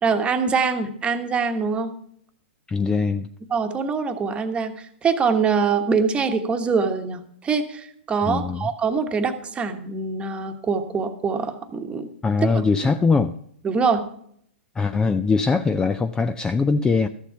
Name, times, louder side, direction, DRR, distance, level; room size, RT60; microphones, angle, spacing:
voice 1, 0.0-1.9 3.5-12.1 12.5-12.6 13.6-14.0, right 5 dB, 15° right, 7 dB, 1.2 m, -24 dB
voice 2, 2.7-3.3 8.3-8.7 12.2-13.3 14.8-17.1, left 4 dB, 10° left, 10 dB, 0.4 m, -21 dB
13.0 x 7.1 x 5.8 m, 0.67 s
hypercardioid pair, 125°, 6 cm